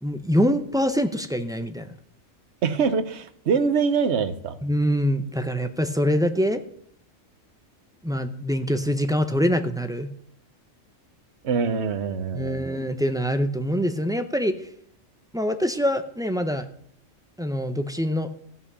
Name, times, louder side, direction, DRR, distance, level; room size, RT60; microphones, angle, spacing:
voice 1, 0.0-1.9 4.6-6.6 8.0-10.1 12.3-14.7 15.3-16.7 17.4-18.3, equal, 5° right, 7 dB, 0.3 m, -24 dB
voice 2, 2.6-4.6 11.4-12.7, right 5 dB, 60° right, 11 dB, 1.1 m, -24 dB
14.5 x 5.7 x 6.8 m, 0.64 s
omnidirectional pair, 1.3 m